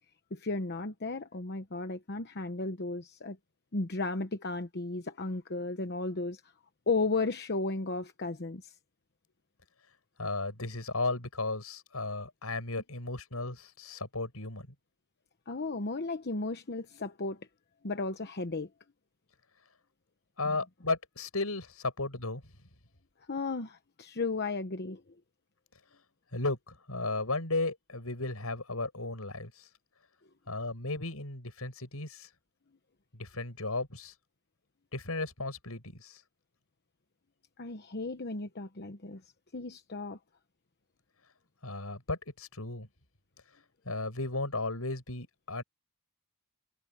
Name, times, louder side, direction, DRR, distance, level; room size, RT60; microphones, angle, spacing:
voice 1, 0.3-3.4 3.7-6.4 6.9-8.7 15.5-17.4 17.8-18.7 20.4-20.6 23.3-25.0 37.6-39.2 39.5-40.2, left 3 dB, 50° left, 1.0 m, -34 dB
voice 2, 10.2-14.7 20.4-22.4 26.3-29.5 30.5-32.3 33.1-34.1 34.9-36.2 41.6-42.9 43.9-45.6, left 2 dB, 80° left, 7.2 m, -35 dB
head